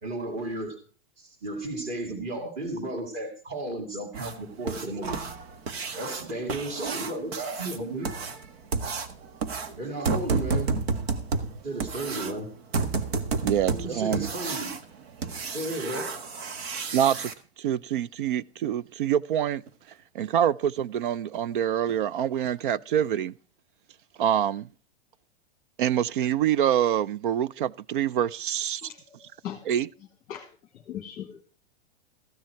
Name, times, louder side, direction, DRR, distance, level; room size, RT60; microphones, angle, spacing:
voice 1, 0.0-0.8 1.2-5.2 5.9-8.1 9.8-10.7 11.6-12.5 13.7-14.7 15.5-16.1, right 2 dB, 20° right, 2.2 m, -33 dB
sound 1, 4.1-17.3 19.7-19.8 20.2-20.3 20.8-20.9 21.3-21.4 21.9-22.1 22.4-22.5 23.0-23.1, right 4 dB, 70° right, 1.7 m, -31 dB
voice 2, 13.4-14.3 16.9-17.3 17.6-19.6 20.1-23.3 24.2-24.7 25.8-28.8 29.7-29.9, right 10 dB, 55° right, 0.5 m, -26 dB
voice 3, 28.8-29.6 30.3-31.5, left 10 dB, 15° left, 1.3 m, -40 dB
14.5 x 10.5 x 4.5 m
supercardioid pair, 170°, 32 cm